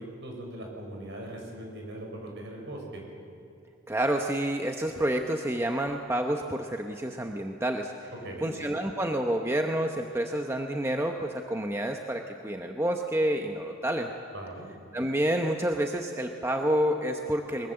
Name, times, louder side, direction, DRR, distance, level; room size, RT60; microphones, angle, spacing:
voice 1, 0.0-3.0 8.2-8.6 14.3-14.7, right 1 dB, 55° right, 0 dB, 6.1 m, -40 dB
voice 2, 3.9-8.1 8.4-14.1 14.9-17.7, right 1 dB, 10° right, 3 dB, 0.9 m, -29 dB
22.5 x 22.0 x 7.7 m, 2.5 s
head